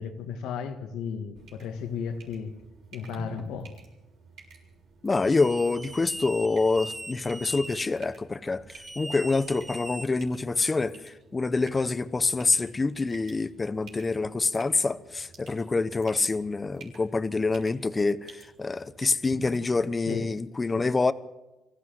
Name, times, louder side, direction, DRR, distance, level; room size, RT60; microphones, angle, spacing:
voice 1, 0.0-2.5 2.9-3.7 20.1-20.3 20.7-20.9, left 6 dB, 90° left, 2.0 m, -34 dB
sound 1, 1.4-19.5, right 2 dB, 75° right, 6.1 m, -50 dB
voice 2, 5.0-8.6 9.0-21.1, left 3 dB, 25° left, 1.0 m, -26 dB
sound 2, 5.1-7.8 8.7-10.5, right 2 dB, 20° right, 2.2 m, -41 dB
24.5 x 15.0 x 7.8 m
cardioid pair, 90°, 0 cm